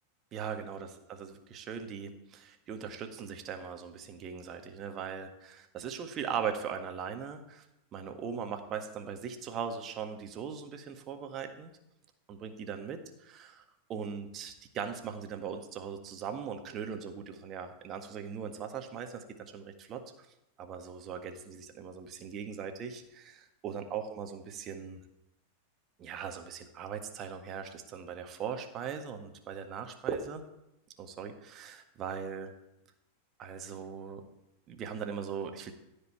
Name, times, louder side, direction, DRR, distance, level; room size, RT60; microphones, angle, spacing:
voice 1, 0.3-7.6 7.9-11.7 12.3-13.6 13.9-20.0 20.6-25.0 26.0-30.4 31.0-32.5 33.4-34.2 34.7-35.7, right 7 dB, 30° right, 6 dB, 1.7 m, -39 dB
15.0 x 5.3 x 9.0 m, 0.86 s
figure-of-eight pair, 90°, 0 cm